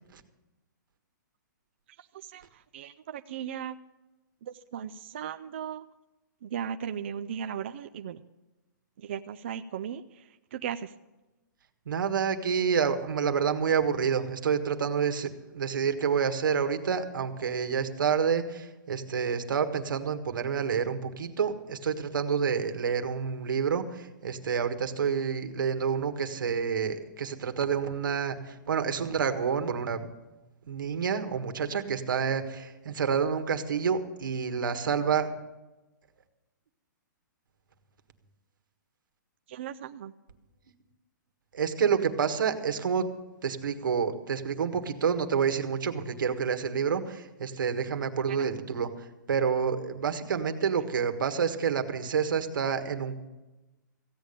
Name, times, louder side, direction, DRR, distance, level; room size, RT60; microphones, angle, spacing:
voice 1, 2.0-3.8 4.4-5.8 6.4-8.2 9.0-10.9 39.5-40.1 48.3-48.6 50.7-50.9, right 8 dB, 35° right, 8 dB, 0.4 m, -37 dB
voice 2, 11.8-30.1 30.7-35.3 41.5-43.1 43.4-53.1, right 6 dB, 85° right, 7 dB, 1.6 m, -28 dB
15.5 x 8.8 x 6.7 m, 1.1 s
hypercardioid pair, 175°, 11 cm